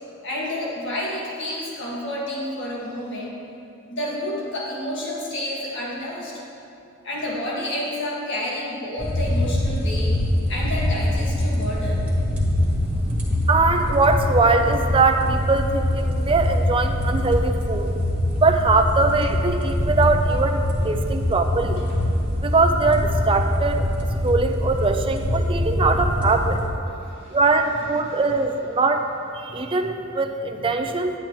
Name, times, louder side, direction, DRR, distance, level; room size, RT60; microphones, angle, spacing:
voice 1, 0.2-3.4 3.9-6.4 7.0-10.2 10.5-12.1 26.9-27.4 28.1-28.2 30.5-30.6, left 1 dB, 60° left, -5 dB, 1.8 m, -30 dB
sound 1, 9.0-26.7, left 1 dB, 5° right, 1.4 m, -23 dB
voice 2, 13.5-17.9 18.4-21.8 22.4-23.8 24.2-26.6 27.3-29.0 29.3-31.1, right 3 dB, 25° right, 5 dB, 0.5 m, -21 dB
10.5 x 9.1 x 3.1 m, 2.7 s
head